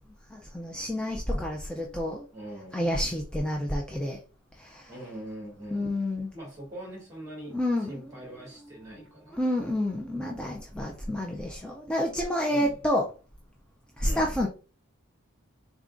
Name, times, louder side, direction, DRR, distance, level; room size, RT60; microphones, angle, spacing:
voice 1, 0.3-2.2 2.7-4.2 4.6-4.9 5.7-6.3 7.5-8.1 9.3-13.1 14.0-14.5, left 1 dB, 5° left, 0.3 m, -29 dB
voice 2, 2.3-2.8 4.9-6.0 6.3-7.5 7.9-9.8 12.5-12.8 14.0-14.3, right 1 dB, 15° right, 1.3 m, -42 dB
3.7 x 3.5 x 2.5 m
head